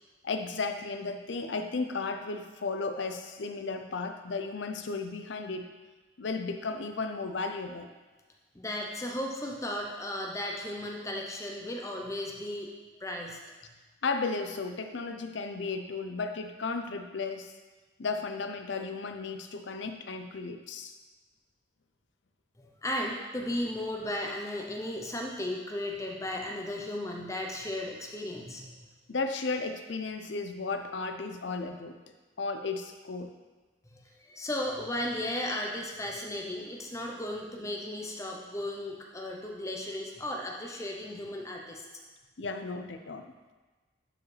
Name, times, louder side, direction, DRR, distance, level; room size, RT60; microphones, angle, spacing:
voice 1, 0.2-5.7 6.2-7.9 14.0-17.5 18.0-20.9 29.1-32.0 32.4-33.3 42.4-43.3, left 4 dB, 65° left, 6 dB, 0.6 m, -34 dB
voice 2, 8.5-12.7 13.0-13.4 22.6-28.8 33.9-41.9, left 1 dB, 15° left, 0 dB, 0.7 m, -35 dB
11.5 x 4.7 x 3.3 m, 1.3 s
head